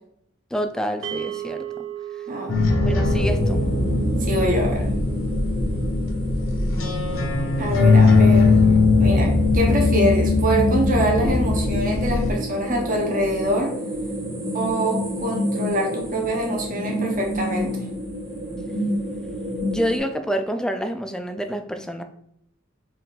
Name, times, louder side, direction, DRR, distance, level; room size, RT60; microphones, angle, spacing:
voice 1, 0.5-1.7 2.8-3.6 19.6-22.0, equal, 5° left, 7 dB, 0.3 m, -27 dB
sound 1, 1.0-11.3, right 10 dB, 70° right, 0.5 m, -39 dB
sound 2, 2.5-12.3, left 3 dB, 75° left, 0.8 m, -19 dB
sound 3, 3.2-20.0, equal, 20° right, 1.1 m, -30 dB
voice 2, 4.2-4.9 7.6-8.6 9.0-13.7 14.5-17.7, equal, 45° right, -1 dB, 0.9 m, -24 dB
4.4 x 2.5 x 3.8 m, 0.71 s
head